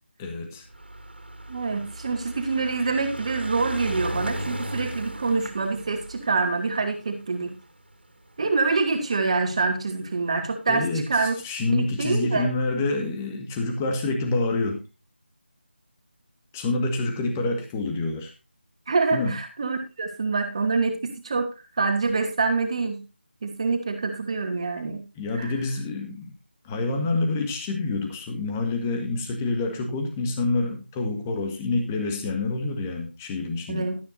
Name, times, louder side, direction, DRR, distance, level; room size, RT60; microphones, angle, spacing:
voice 1, 0.2-0.6 10.7-14.8 16.5-18.3 19.1-19.4 25.2-26.3 26.6-33.9, left 3 dB, 10° left, 4 dB, 1.8 m, -27 dB
sound 1, 0.7-9.2 10.0-10.1 10.3-10.4 10.6-10.7, right 1 dB, 60° right, 2.8 m, -36 dB
voice 2, 1.5-7.6 8.4-11.3 11.7-12.5 18.9-21.5 21.8-23.0 23.4-25.0 25.3-25.5 33.7-34.0, right 4 dB, 30° right, 5 dB, 2.6 m, -26 dB
13.0 x 12.0 x 2.7 m, 0.29 s
figure-of-eight pair, 160°, 6 cm